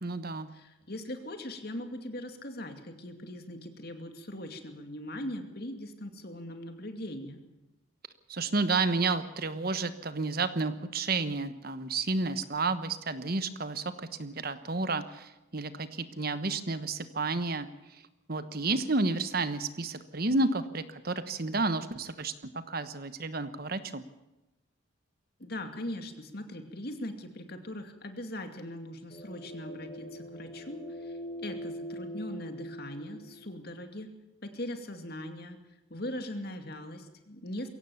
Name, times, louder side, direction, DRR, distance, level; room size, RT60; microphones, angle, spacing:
voice 1, 0.0-0.5 8.3-17.7 18.3-22.3 22.7-24.0, right 3 dB, 45° right, 11 dB, 1.2 m, -31 dB
voice 2, 0.5-7.4 25.4-34.1 34.4-35.6 35.9-37.7, left 1 dB, 50° left, 6 dB, 2.5 m, -40 dB
sound 1, 29.1-33.6, equal, 30° left, 5.3 m, -42 dB
22.5 x 17.0 x 7.2 m, 0.99 s
head